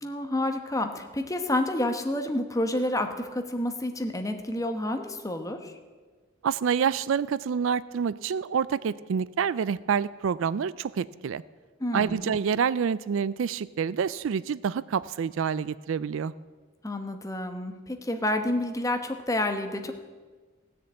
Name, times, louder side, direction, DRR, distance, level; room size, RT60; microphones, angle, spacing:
voice 1, 0.0-5.8 11.8-12.3 16.8-19.9, left 1 dB, 15° left, 6 dB, 1.1 m, -29 dB
voice 2, 6.4-11.4 11.9-16.3, right 7 dB, 65° right, 18 dB, 0.4 m, -27 dB
16.5 x 6.7 x 8.8 m, 1.4 s
head